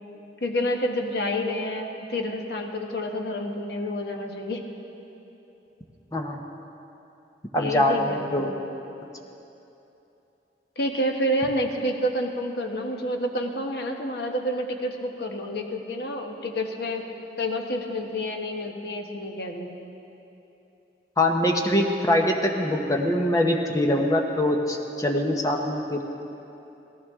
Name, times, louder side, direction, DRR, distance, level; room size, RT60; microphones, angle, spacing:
voice 1, 0.4-4.6 7.5-8.5 10.8-17.1 17.4-19.8, equal, 65° left, 2 dB, 1.2 m, -29 dB
voice 2, 7.5-8.5 21.2-26.0, left 1 dB, 20° left, 2 dB, 0.9 m, -23 dB
17.5 x 14.5 x 3.7 m, 2.9 s
head